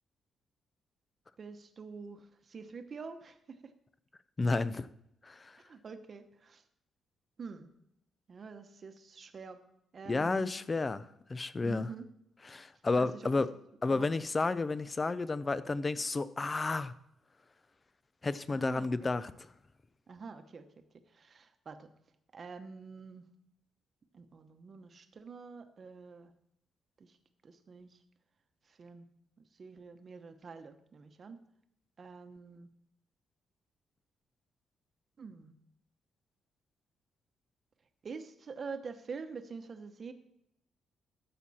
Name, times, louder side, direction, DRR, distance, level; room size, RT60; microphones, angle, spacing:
voice 1, 1.4-3.7 5.6-6.6 7.4-7.7 8.3-9.6 9.9-10.5 11.6-12.1 13.0-13.6 13.9-14.1 18.5-18.9 20.1-20.7 21.1-21.9 22.3-23.3 24.1-26.3 27.0-27.2 27.4-28.0 28.7-29.1 29.6-31.4 32.0-32.7 35.2-35.5 38.0-40.1, right 5 dB, 40° right, 1.0 m, -46 dB
voice 2, 4.4-4.9 5.2-5.6 10.1-11.9 12.5-13.5 13.8-16.9 18.2-19.3, left 3 dB, 25° left, 0.5 m, -31 dB
13.0 x 7.5 x 4.2 m
cardioid pair, 130°, 0 cm